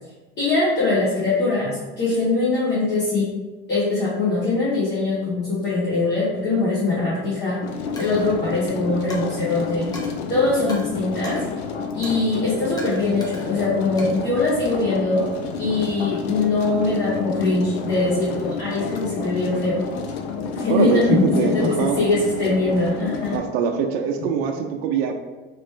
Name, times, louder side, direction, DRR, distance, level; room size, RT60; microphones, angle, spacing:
voice 1, 0.4-3.3 3.7-7.6 8.0-9.9 10.3-11.4 12.0-15.3 15.6-19.8 20.4-23.4, left 3 dB, 35° left, -9 dB, 1.2 m, -22 dB
sound 1, 7.6-23.4, left 5 dB, 85° left, 0.5 m, -30 dB
Coin (dropping), 8.0-8.3 9.1-9.4 9.9-10.1 10.7-10.8 11.2-11.5 12.0-12.3 12.8-13.5 14.0-14.9, left 1 dB, 10° left, 0.9 m, -39 dB
voice 2, 20.7-22.0 23.3-25.1, right 6 dB, 70° right, 4 dB, 0.5 m, -23 dB
3.1 x 3.0 x 3.2 m, 1.2 s
hypercardioid pair, 85°, 30 cm